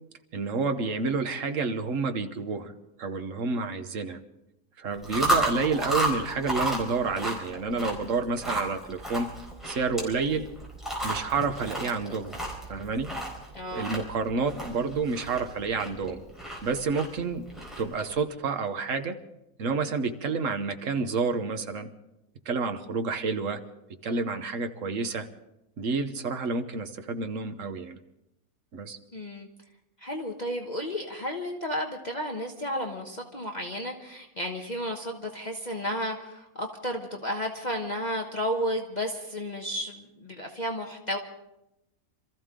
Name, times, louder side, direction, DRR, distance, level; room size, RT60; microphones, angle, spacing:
voice 1, 0.3-2.7 3.0-4.2 4.8-9.3 9.6-10.5 11.0-12.4 12.7-13.1 13.7-16.2 16.6-17.4 17.8-19.2 19.6-21.9 22.4-23.6 24.0-25.3 25.8-28.0 28.7-29.0, right 4 dB, 65° right, 7 dB, 1.4 m, -29 dB
Chewing mastication, 4.9-18.1, right 1 dB, ahead, 4.3 m, -33 dB
voice 2, 13.5-13.9 29.1-29.5 30.0-41.2, equal, 30° left, 2 dB, 1.3 m, -32 dB
26.5 x 14.5 x 3.7 m, 0.88 s
omnidirectional pair, 1.5 m